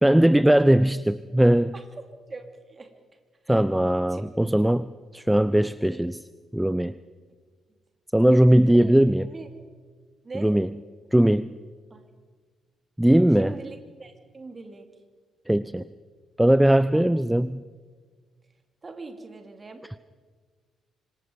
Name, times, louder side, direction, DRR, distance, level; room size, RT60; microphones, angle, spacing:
voice 1, 0.0-1.7 3.5-6.2 6.5-6.9 8.1-9.3 10.3-10.7 11.1-11.6 13.0-13.6 15.5-15.8 16.4-17.6, right 1 dB, 5° right, 16 dB, 0.5 m, -19 dB
voice 2, 2.3-2.9 3.4-3.6 4.1-4.3 8.7-8.9 9.3-9.5 10.2-10.5 11.9-12.1 13.4-14.9 16.9-17.1 18.8-19.8, right 3 dB, 35° right, 6 dB, 2.9 m, -41 dB
25.5 x 20.5 x 5.3 m, 1.5 s
figure-of-eight pair, 40°, 0 cm